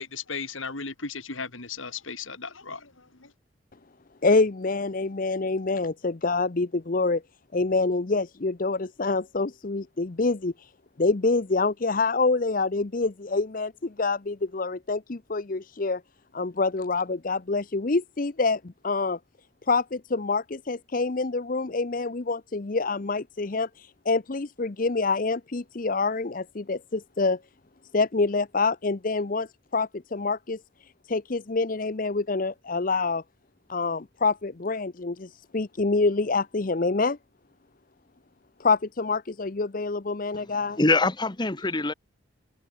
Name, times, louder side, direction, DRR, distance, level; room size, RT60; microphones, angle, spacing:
voice 1, 0.0-3.3, left 5 dB, 75° left, 3.2 m, -36 dB
voice 2, 4.2-7.2 7.5-10.7 11.0-16.0 16.3-19.2 19.7-27.4 27.9-33.2 33.7-37.2 38.6-40.8, left 3 dB, 40° left, 0.7 m, -26 dB
voice 3, 40.4-41.9, left 2 dB, 20° left, 1.0 m, -24 dB
head